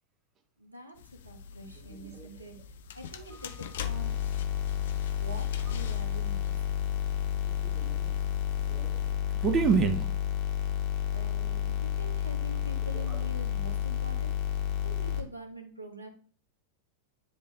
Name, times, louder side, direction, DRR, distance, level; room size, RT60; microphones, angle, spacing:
voice 1, 0.6-2.6 2.9-4.2 5.2-6.6 11.1-14.4 14.8-16.1, right 2 dB, 80° right, 1.3 m, -45 dB
sound 1, 1.0-9.1, left 7 dB, 60° left, 0.6 m, -45 dB
voice 2, 1.9-2.3 7.5-8.1 8.7-9.1 9.4-10.1 12.9-13.2, right 6 dB, 25° right, 0.7 m, -29 dB
sound 2, 3.8-15.2, left 10 dB, 40° left, 1.5 m, -31 dB
9.8 x 3.3 x 3.2 m
figure-of-eight pair, 90°, 0 cm